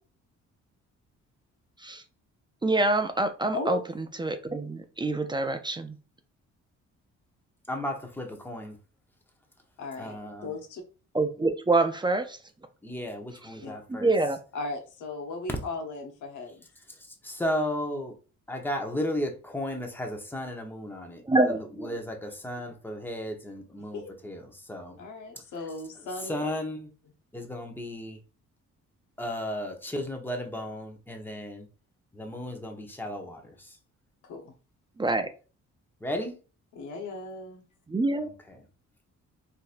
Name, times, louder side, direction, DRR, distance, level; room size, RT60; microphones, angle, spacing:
voice 1, 2.6-6.0 11.1-12.4 13.9-14.4 21.3-21.9 35.0-35.3 37.9-38.3, right 2 dB, 15° right, 0.4 m, -26 dB
voice 2, 7.7-8.8 10.0-10.5 12.8-14.1 17.2-18.1 18.5-25.0 26.3-26.9 27.3-28.2 29.2-31.7 32.1-33.8 36.0-36.4 38.2-38.6, left 1 dB, 5° left, 0.8 m, -34 dB
voice 3, 9.8-10.1 10.4-10.8 13.6-13.8 14.5-16.6 23.9-24.1 25.0-26.6 34.2-34.5 36.7-37.6, left 3 dB, 80° left, 1.0 m, -37 dB
3.9 x 2.7 x 2.5 m
cardioid pair, 90°, 30 cm